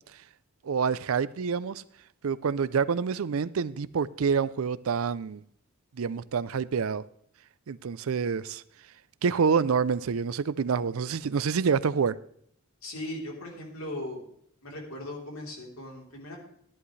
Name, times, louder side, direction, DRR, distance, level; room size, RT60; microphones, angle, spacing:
voice 1, 0.6-1.8 2.2-5.4 6.0-7.0 7.7-8.6 9.2-12.2, right 6 dB, 75° right, 0.5 m, -27 dB
voice 2, 12.8-14.2 14.6-16.4, left 1 dB, 75° left, 3.6 m, -38 dB
13.5 x 11.0 x 3.2 m
head